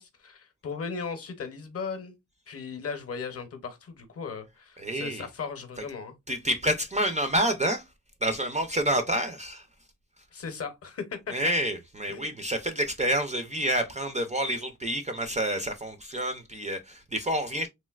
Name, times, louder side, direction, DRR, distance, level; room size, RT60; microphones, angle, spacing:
voice 1, 0.0-2.2 2.5-6.1 10.3-11.5 12.1-12.3, left 5 dB, 45° left, 0.7 m, -37 dB
voice 2, 4.8-5.3 6.3-7.8 8.2-9.6 11.3-17.7, right 1 dB, 20° right, 0.3 m, -28 dB
3.2 x 2.5 x 2.3 m
wide cardioid pair, 130°, 33 cm